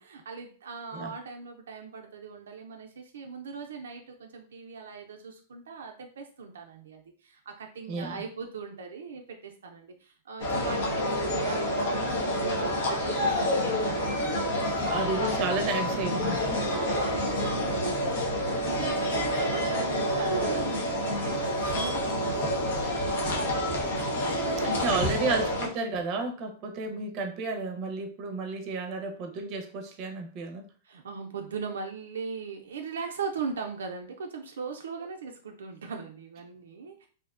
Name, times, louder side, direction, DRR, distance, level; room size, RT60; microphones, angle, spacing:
voice 1, 0.0-13.4 13.6-15.1 16.7-25.1 30.8-37.1, right 5 dB, 90° right, 3 dB, 0.3 m, -40 dB
sound 1, 10.4-25.7, equal, 70° left, 0.7 m, -28 dB
voice 2, 14.9-16.6 24.6-30.7, right 3 dB, 40° right, 5 dB, 0.6 m, -32 dB
2.5 x 2.1 x 2.4 m, 0.40 s
hypercardioid pair, 130°, 0 cm